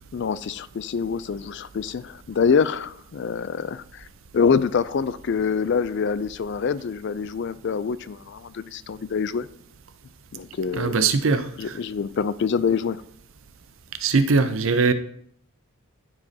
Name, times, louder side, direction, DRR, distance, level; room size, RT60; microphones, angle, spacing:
voice 1, 0.1-4.1 4.3-9.5 10.3-11.1 11.6-13.0, left 6 dB, 50° left, 0.3 m, -25 dB
voice 2, 10.7-11.7 14.0-14.9, right 4 dB, 60° right, 0.6 m, -21 dB
13.5 x 4.9 x 2.8 m
head